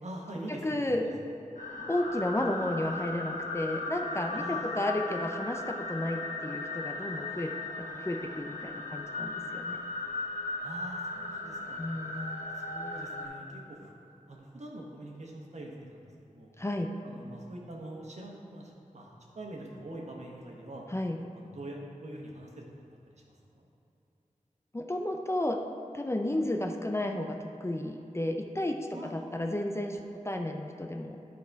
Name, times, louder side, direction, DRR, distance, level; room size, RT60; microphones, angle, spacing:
voice 1, 0.0-1.1 4.3-4.8 10.6-11.9 12.5-13.9 14.3-16.5 17.0-20.8 21.3-22.6 23.1-23.7 28.9-29.4, right 1 dB, 60° right, -1 dB, 1.3 m, -44 dB
voice 2, 0.6-1.0 1.9-7.5 7.8-9.8 11.8-12.5 16.6-16.9 20.9-21.2 24.7-25.6 25.9-31.2, left 1 dB, 20° left, 3 dB, 0.5 m, -32 dB
sound 1, 1.6-13.3, left 2 dB, 80° left, 1.4 m, -37 dB
11.5 x 4.2 x 4.6 m, 2.8 s
wide cardioid pair, 85°, 13 cm